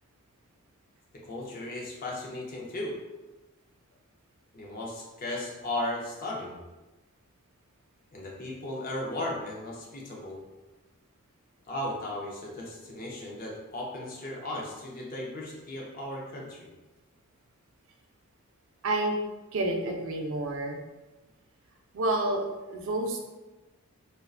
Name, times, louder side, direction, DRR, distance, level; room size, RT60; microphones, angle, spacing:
voice 1, 1.2-2.9 4.5-6.6 8.1-10.4 11.7-16.7, left 1 dB, 40° left, -2 dB, 0.5 m, -36 dB
voice 2, 18.8-19.2 19.5-20.8 21.9-23.2, right 2 dB, 65° right, 2 dB, 0.4 m, -29 dB
2.4 x 2.1 x 2.4 m, 1.1 s
head